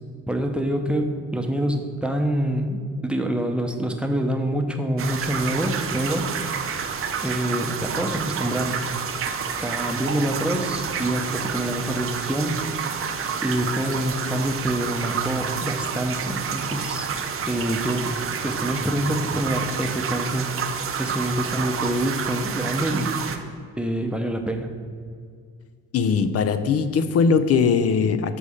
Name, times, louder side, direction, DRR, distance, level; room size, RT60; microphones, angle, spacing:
voice 1, 0.3-6.3 7.2-8.8 9.6-12.6 13.4-17.1 17.4-18.2 18.4-20.6 21.0-23.2 23.8-24.7, right 1 dB, 5° right, 3 dB, 0.6 m, -26 dB
sound 1, 5.0-23.4, right 6 dB, 45° right, 0.6 m, -29 dB
voice 2, 25.9-28.4, left 5 dB, 55° left, 11 dB, 0.4 m, -20 dB
6.8 x 4.2 x 4.9 m, 2.1 s
cardioid pair, 90°, 30 cm